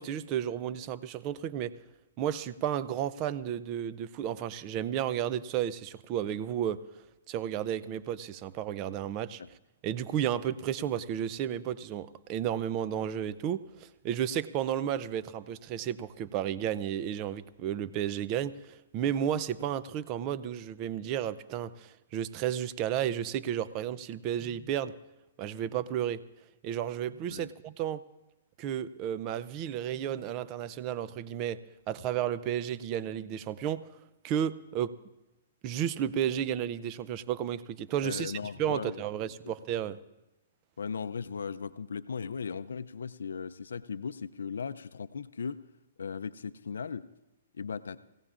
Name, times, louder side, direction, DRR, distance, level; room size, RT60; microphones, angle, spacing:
voice 1, 0.0-1.7 2.2-6.8 7.3-9.4 9.8-24.9 25.4-26.2 26.6-28.0 28.6-31.6 31.9-33.9 34.2-34.9 35.6-40.0, right 10 dB, 35° right, 16 dB, 0.5 m, -32 dB
voice 2, 38.0-39.0 40.8-45.6 46.0-47.1 47.5-48.0, left 6 dB, 85° left, 11 dB, 0.5 m, -37 dB
26.0 x 16.0 x 2.5 m, 0.95 s
hypercardioid pair, 140°, 0 cm